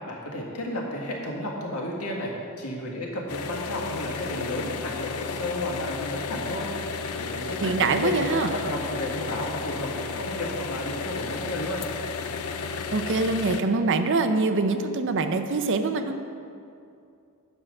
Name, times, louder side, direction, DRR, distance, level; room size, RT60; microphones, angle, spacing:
voice 1, 0.1-6.7 7.1-11.9, left 1 dB, 90° left, -2 dB, 1.8 m, -33 dB
sound 1, 3.3-13.6, left 5 dB, 75° left, 0.6 m, -33 dB
voice 2, 7.6-8.5 12.9-16.2, right 3 dB, 60° right, 8 dB, 0.6 m, -24 dB
8.9 x 5.7 x 6.4 m, 2.5 s
head